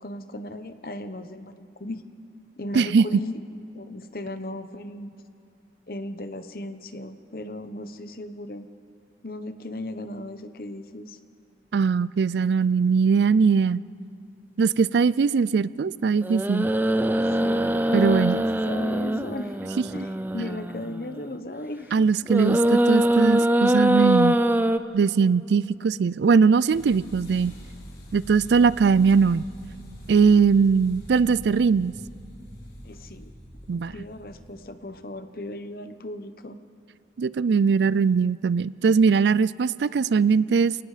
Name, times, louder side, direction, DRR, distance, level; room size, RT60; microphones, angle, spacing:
voice 1, 0.0-2.0 2.6-3.4 3.7-5.1 5.9-8.7 9.2-11.2 17.2-19.6 19.9-22.0 32.8-33.3 33.7-36.6, left 1 dB, 55° left, 10 dB, 1.0 m, -36 dB
voice 2, 2.7-3.1 11.7-13.8 14.6-16.7 17.9-18.4 21.9-24.4 24.9-27.5 28.1-29.5 30.1-31.9 33.7-34.0 37.2-40.8, right 5 dB, 75° right, 20 dB, 0.4 m, -20 dB
sound 1, 16.2-21.0 22.3-24.8, right 1 dB, 10° right, 0.5 m, -23 dB
sound 2, 26.7-34.6, equal, 75° left, 4.5 m, -44 dB
29.5 x 18.5 x 5.0 m, 2.6 s
head